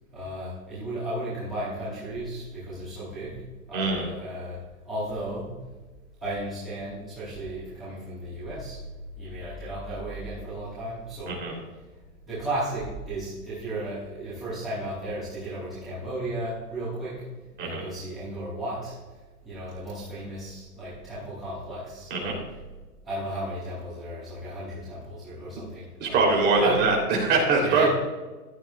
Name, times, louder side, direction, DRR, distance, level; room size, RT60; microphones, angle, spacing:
voice 1, 0.1-3.4 3.7-5.6 6.2-8.8 9.2-11.5 12.2-17.2 17.6-19.0 19.4-22.4 23.0-26.3 26.6-26.8 27.6-27.9, right 1 dB, ahead, -18 dB, 0.3 m, -34 dB
voice 2, 3.7-4.0 11.3-11.5 17.6-17.8 22.1-22.4 26.0-27.9, right 3 dB, 20° right, -1 dB, 3.2 m, -23 dB
14.5 x 10.5 x 2.4 m, 1.2 s
hypercardioid pair, 150°, 47 cm